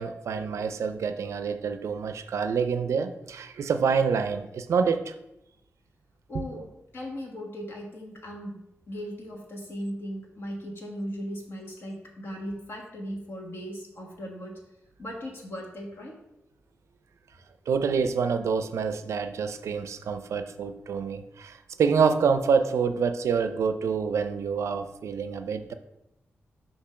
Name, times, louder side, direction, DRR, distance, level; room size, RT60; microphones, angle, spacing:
voice 1, 0.0-5.1 6.5-6.6 17.7-25.7, right 6 dB, 90° right, 9 dB, 0.4 m, -27 dB
voice 2, 6.3-6.7 6.9-8.6 8.9-14.5 15.0-16.1, equal, 50° left, 0 dB, 1.4 m, -37 dB
6.8 x 2.8 x 5.7 m, 0.88 s
wide cardioid pair, 150°, 5 cm